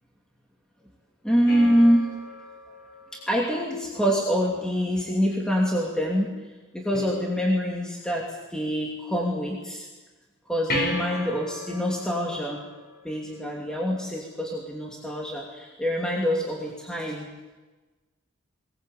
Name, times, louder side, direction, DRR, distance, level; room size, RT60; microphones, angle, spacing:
voice 1, 1.2-2.1 3.1-6.3 6.7-9.9 10.5-12.6 13.0-17.3, equal, 5° left, -2 dB, 2.8 m, -25 dB
sound 1, 1.5-4.1 6.9-7.9 10.7-13.6 16.7-16.8, left 1 dB, 45° left, 5.6 m, -36 dB
23.0 x 19.5 x 8.5 m, 1.2 s
head